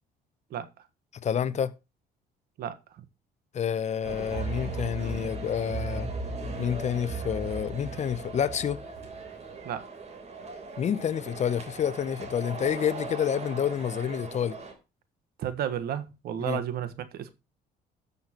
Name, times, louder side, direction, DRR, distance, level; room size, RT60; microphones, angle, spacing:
voice 1, 0.5-0.9 2.6-3.0 9.6-9.8 15.4-17.3, right 10 dB, 70° right, 1.4 m, -33 dB
voice 2, 1.2-1.7 3.5-6.1 6.6-8.8 10.8-14.6 16.5-16.6, left 8 dB, 40° left, 0.8 m, -28 dB
sound 1, 4.0-14.7, right 3 dB, 40° right, 3.5 m, -37 dB
14.0 x 6.7 x 3.0 m
cardioid pair, 110°, 17 cm